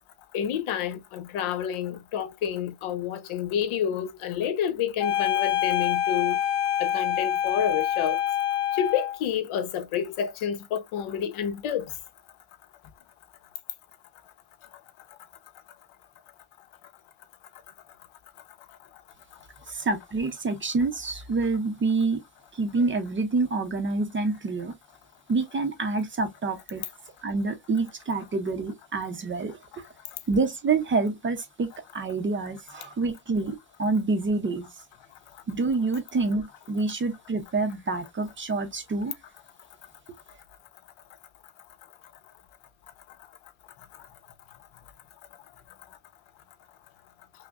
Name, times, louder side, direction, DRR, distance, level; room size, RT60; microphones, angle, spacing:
voice 1, 0.3-6.4 6.8-8.2 8.7-11.9, left 9 dB, 80° left, 0.9 m, -29 dB
sound 1, 5.0-9.2, left 11 dB, 55° left, 1.2 m, -26 dB
voice 2, 19.7-22.2 22.5-24.7 25.3-26.8 27.2-29.8 30.3-34.7 35.5-39.1, right 3 dB, 25° right, 0.5 m, -27 dB
5.9 x 2.0 x 2.3 m
cardioid pair, 160°, 49 cm